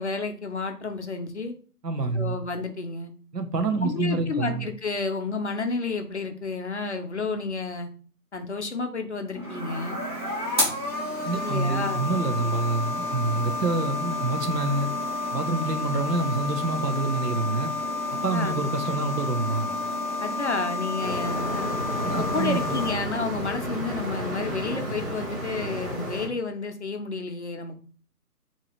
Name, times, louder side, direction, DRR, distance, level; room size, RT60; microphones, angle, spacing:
voice 1, 0.0-1.6 2.1-3.1 3.8-7.9 8.3-10.0 11.4-12.1 18.3-18.6 20.2-21.7 22.1-27.8, left 3 dB, 45° left, 0.5 m, -31 dB
voice 2, 1.8-2.4 3.3-4.7 11.2-14.9 15.3-17.7 18.2-19.7 22.0-22.7, right 3 dB, 80° right, 0.9 m, -27 dB
sound 1, 9.3-22.9, left 2 dB, 15° right, 1.0 m, -30 dB
sound 2, 21.0-26.3, equal, 60° right, 2.0 m, -32 dB
4.6 x 2.9 x 3.0 m
figure-of-eight pair, 145°, 47 cm